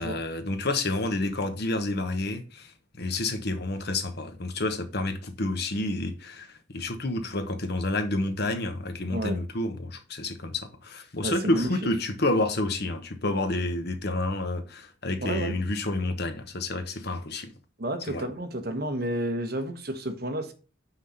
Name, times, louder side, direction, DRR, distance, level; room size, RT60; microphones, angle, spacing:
voice 1, 0.0-17.5 18.1-18.2, left 2 dB, 55° left, 1.1 m, -29 dB
voice 2, 11.2-11.7 15.2-15.6 17.8-20.5, right 1 dB, 50° right, 1.2 m, -31 dB
5.8 x 5.1 x 5.5 m
head